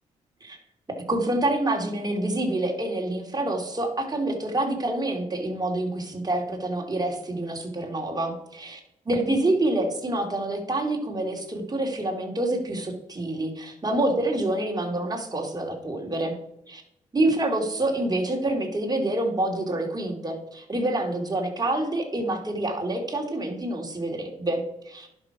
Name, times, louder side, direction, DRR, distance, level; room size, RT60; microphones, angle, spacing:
voice 1, 0.9-8.8 9.1-16.4 16.7-16.8 17.1-25.1, right 1 dB, 25° right, 2 dB, 2.8 m, -27 dB
10.5 x 6.4 x 4.9 m, 0.81 s
supercardioid pair, 50°, 15 cm